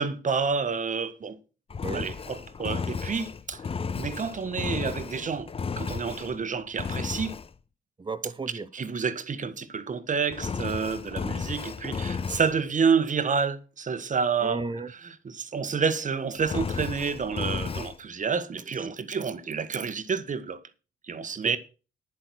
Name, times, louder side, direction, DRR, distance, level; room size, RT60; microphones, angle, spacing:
voice 1, 0.0-1.4 1.9-3.6 3.9-5.5 5.8-7.3 8.7-14.6 15.2-20.6 21.1-21.6, right 5 dB, 40° right, 1.5 m, -29 dB
Engine, 1.7-6.4 6.8-7.5 10.3-12.6 16.4-18.0, left 5 dB, 30° left, 0.6 m, -33 dB
voice 2, 8.0-8.7 14.4-14.9 17.8-17.9 19.0-19.1 21.3-21.6, right 3 dB, 25° right, 1.1 m, -34 dB
10.5 x 8.3 x 6.3 m
cardioid pair, 90°, 20 cm